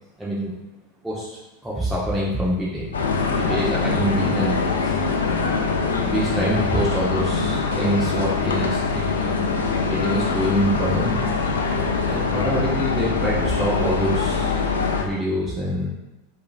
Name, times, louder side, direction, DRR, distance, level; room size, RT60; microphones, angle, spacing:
voice 1, 0.2-0.6 1.0-3.0 3.4-5.0 5.9-9.5 9.9-11.2 12.0-15.9, equal, 5° right, -7 dB, 0.7 m, -26 dB
sound 1, 2.9-15.0, left 4 dB, 85° left, 0.5 m, -23 dB
4.8 x 2.6 x 2.4 m, 1.0 s
hypercardioid pair, 95°, 0 cm